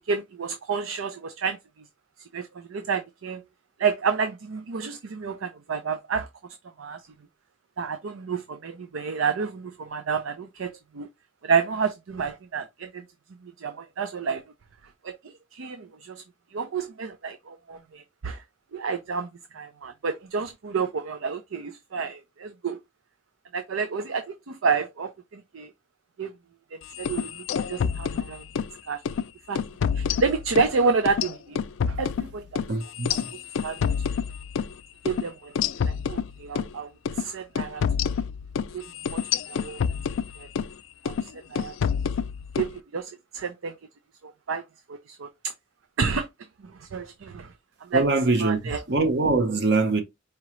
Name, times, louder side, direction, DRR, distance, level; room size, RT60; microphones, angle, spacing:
voice 1, 0.0-1.6 2.3-3.4 3.8-6.3 6.8-7.0 7.8-11.1 11.4-13.0 13.4-14.4 15.0-16.2 16.5-18.4 18.7-19.3 19.5-22.8 23.5-25.7 26.2-26.3 26.7-28.4 28.9-29.0 29.5-29.6 29.9-31.6 31.9-32.6 33.6-33.9 35.0-35.5 35.8-36.9 37.2-37.8 38.7-39.2 39.5-39.8 40.4-40.5 41.0-41.7 42.6-43.8 44.2-44.6 44.9-45.5 46.0-46.3 46.8-47.5 47.8-48.0 48.4-48.8, right 5 dB, 90° right, 0.5 m, -29 dB
sound 1, 26.9-28.7 29.1-29.2 29.6-30.7 31.1-34.7 35.1-35.2 35.6-36.7 37.1-37.2 37.6-40.7 41.1-41.3 41.6-42.7, left 7 dB, 85° left, 0.3 m, -28 dB
voice 2, 32.7-33.3 47.9-50.0, right 3 dB, 55° right, 0.7 m, -23 dB
4.8 x 2.9 x 3.0 m
head